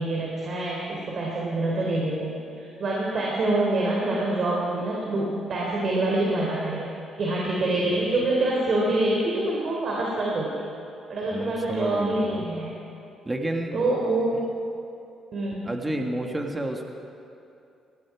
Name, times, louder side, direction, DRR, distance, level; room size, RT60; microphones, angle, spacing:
voice 1, 0.0-6.9 7.2-10.6 11.1-12.7 13.7-14.3 15.3-15.7, right 2 dB, 55° right, -3 dB, 3.3 m, -26 dB
voice 2, 11.3-12.4 13.2-13.9 15.6-16.9, right 1 dB, 15° right, 3 dB, 1.5 m, -30 dB
19.0 x 15.0 x 4.8 m, 2.6 s
cardioid pair, 90°, 0 cm